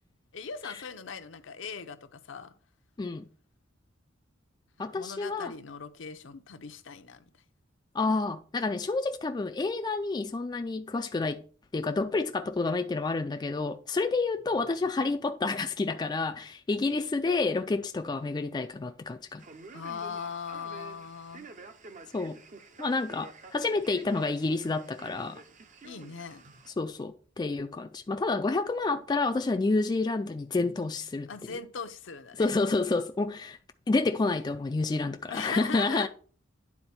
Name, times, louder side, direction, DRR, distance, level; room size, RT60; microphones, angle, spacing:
voice 1, 0.3-2.5 4.9-7.4 19.7-21.5 25.8-26.4 31.3-32.5 35.3-36.1, left 6 dB, 70° left, 0.7 m, -40 dB
voice 2, 4.8-5.5 7.9-11.4 11.7-19.4 22.1-22.4 22.8-25.4 26.8-31.3 32.4-33.6 33.9-36.1, left 3 dB, 20° left, 0.3 m, -29 dB
Male speech man speaking, 19.4-26.7, right 3 dB, 40° right, 0.6 m, -49 dB
9.7 x 3.9 x 4.3 m
head